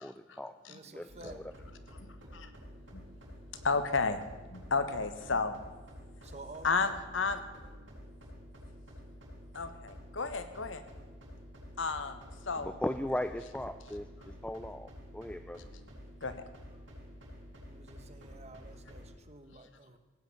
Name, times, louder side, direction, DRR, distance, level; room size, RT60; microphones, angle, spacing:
voice 1, 0.0-0.5 0.8-1.5 12.5-15.6, left 1 dB, 5° left, 9 dB, 0.4 m, -38 dB
voice 2, 0.7-1.4 6.2-6.9 17.7-20.0, right 3 dB, 35° right, 8 dB, 1.1 m, -51 dB
sound 1, 1.1-19.2, equal, 80° right, 4.4 m, -50 dB
voice 3, 3.6-4.2 4.5-5.5 6.6-7.4 9.5-10.8 11.8-12.2 12.5-12.7 16.2-16.3, left 4 dB, 75° left, 10 dB, 1.2 m, -31 dB
17.0 x 9.1 x 7.1 m, 1.3 s
head